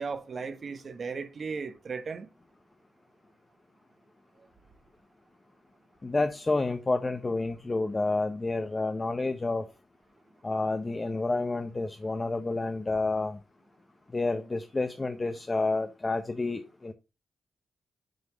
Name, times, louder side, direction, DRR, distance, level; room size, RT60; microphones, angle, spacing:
voice 1, 0.0-2.3, right 5 dB, 50° right, 1.1 m, -36 dB
voice 2, 6.0-9.6 10.4-13.4 14.1-16.9, left 3 dB, 25° left, 0.7 m, -29 dB
7.8 x 3.5 x 6.1 m
cardioid pair, 80°, 0 cm